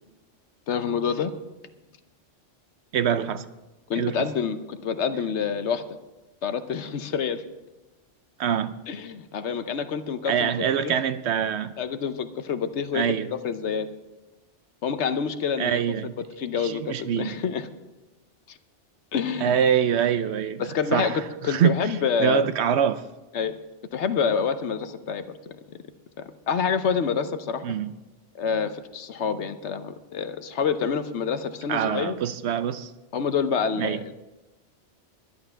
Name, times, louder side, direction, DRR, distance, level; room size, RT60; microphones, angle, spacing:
voice 1, 0.7-1.3 3.9-6.0 6.4-7.4 8.9-10.5 10.8-10.9 11.8-13.9 14.8-15.8 16.4-17.7 18.5-18.6 19.1-19.6 20.6-22.5 23.3-23.5 23.9-25.4 26.2-27.6 28.3-32.2 33.1-34.2, left 6 dB, 70° left, 10 dB, 1.1 m, -27 dB
voice 2, 2.9-3.4 3.9-4.2 8.4-8.7 10.3-11.7 12.9-13.3 15.6-16.2 16.5-17.4 19.4-20.6 20.9-23.0 27.6-27.9 31.7-32.9 33.8-34.0, right 8 dB, 70° right, 12 dB, 0.9 m, -25 dB
11.5 x 11.0 x 5.7 m, 1.1 s
omnidirectional pair, 1.2 m